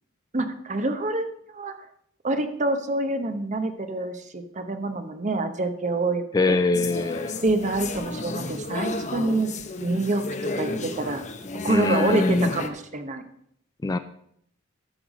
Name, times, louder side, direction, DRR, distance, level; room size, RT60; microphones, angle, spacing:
voice 1, 0.3-1.3 1.5-1.7 2.2-6.6 7.4-9.5 9.8-10.2 10.5-11.2 11.6-13.2, right 2 dB, 35° right, 8 dB, 0.9 m, -26 dB
voice 2, 6.3-7.4 11.7-12.5 13.8-14.0, left 3 dB, 20° left, 11 dB, 0.3 m, -23 dB
sound 1, 6.7-12.7, left 3 dB, 35° left, 0.7 m, -32 dB
13.0 x 5.9 x 5.0 m, 0.69 s
head